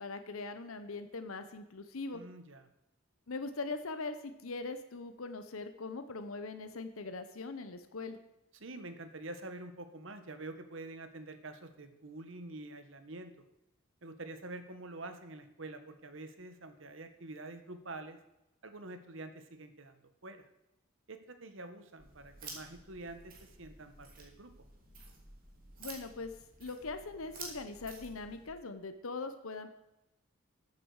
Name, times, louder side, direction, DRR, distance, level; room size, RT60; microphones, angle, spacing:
voice 1, 0.0-2.2 3.3-8.2 25.8-26.3 26.6-29.7, left 3 dB, 85° left, 9 dB, 0.9 m, -41 dB
voice 2, 2.1-2.7 8.5-13.3 14.0-18.2 18.6-20.5 21.1-24.7, right 2 dB, 65° right, 9 dB, 1.2 m, -47 dB
sound 1, 22.0-28.5, right 3 dB, 40° right, 2.8 m, -51 dB
13.5 x 8.6 x 4.8 m, 0.92 s
head